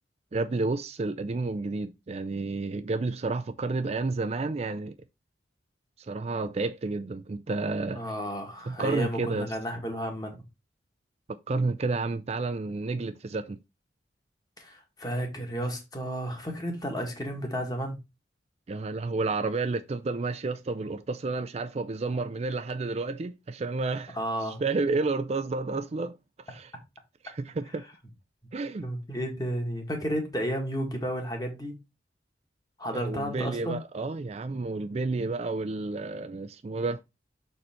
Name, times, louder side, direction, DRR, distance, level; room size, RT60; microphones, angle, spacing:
voice 1, 0.3-5.0 6.1-8.0 8.7-9.5 11.5-13.6 18.7-26.2 26.5-26.7 27.2-27.8 28.5-28.9 32.9-37.0, right 3 dB, 35° right, 0.4 m, -30 dB
voice 2, 7.9-10.4 14.6-18.0 24.2-24.6 28.8-31.7 32.8-33.8, equal, 20° left, 1.8 m, -32 dB
6.5 x 4.3 x 4.3 m
head